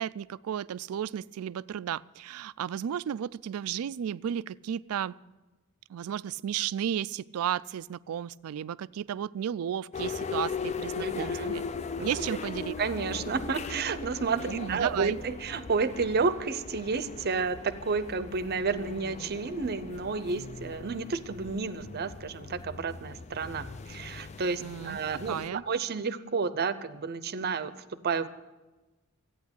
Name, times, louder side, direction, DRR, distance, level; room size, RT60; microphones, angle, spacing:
voice 1, 0.0-5.1 5.9-11.6 12.0-12.8 14.4-15.2 24.6-25.0 25.3-25.6, right 9 dB, 80° right, 19 dB, 0.3 m, -33 dB
sound 1, 9.9-25.5, left 5 dB, 30° left, 0.4 m, -39 dB
voice 2, 11.0-11.6 12.0-12.1 12.8-27.7 28.0-28.3, right 4 dB, 50° right, 14 dB, 0.7 m, -31 dB
14.0 x 9.3 x 8.1 m, 1.1 s
head